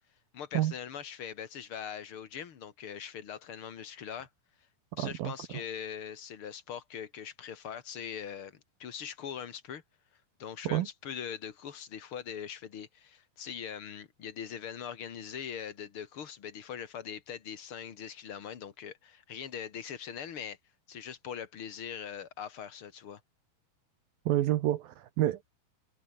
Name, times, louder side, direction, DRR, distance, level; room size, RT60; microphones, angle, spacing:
voice 1, 0.3-4.3 5.0-9.8 10.4-20.6 20.9-23.2, left 8 dB, 45° left, 2.1 m, -41 dB
voice 2, 5.0-5.3 10.6-10.9 24.3-25.4, right 14 dB, 75° right, 2.8 m, -28 dB
omnidirectional pair, 4.4 m